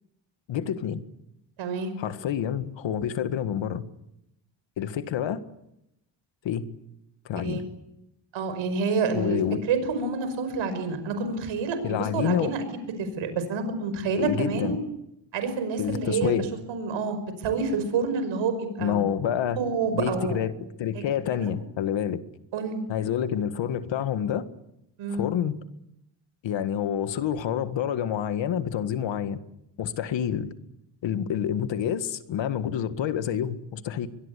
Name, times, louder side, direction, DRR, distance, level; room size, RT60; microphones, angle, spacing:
voice 1, 0.5-1.0 2.0-3.8 4.8-5.4 6.4-6.7 7.3-7.6 9.1-9.6 11.8-12.5 14.2-14.8 15.8-16.4 18.8-19.6 19.9-20.5 20.8-22.2 22.9-24.5 25.1-25.6 26.4-29.4 29.8-30.5 31.0-34.1, left 9 dB, 75° left, 11 dB, 1.9 m, -28 dB
voice 2, 1.6-1.9 7.4-7.6 8.3-9.4 9.7-12.7 13.0-14.8 15.3-16.3 16.7-19.0 19.6-20.4 20.9-21.0 21.3-21.5 22.5-22.9 25.0-25.3, right 4 dB, 85° right, 9 dB, 5.6 m, -28 dB
24.0 x 21.5 x 8.5 m, 0.83 s
cardioid pair, 105°, 45 cm